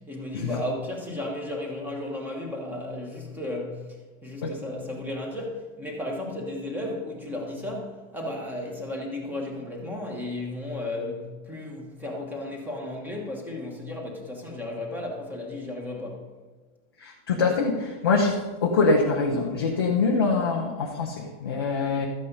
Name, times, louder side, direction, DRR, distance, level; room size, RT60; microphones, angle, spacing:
voice 1, 0.0-16.3, left 1 dB, 5° right, 1 dB, 1.1 m, -34 dB
voice 2, 17.0-22.1, left 4 dB, 20° left, -1 dB, 0.3 m, -24 dB
13.0 x 8.5 x 5.3 m, 1.3 s
supercardioid pair, 175°, 42 cm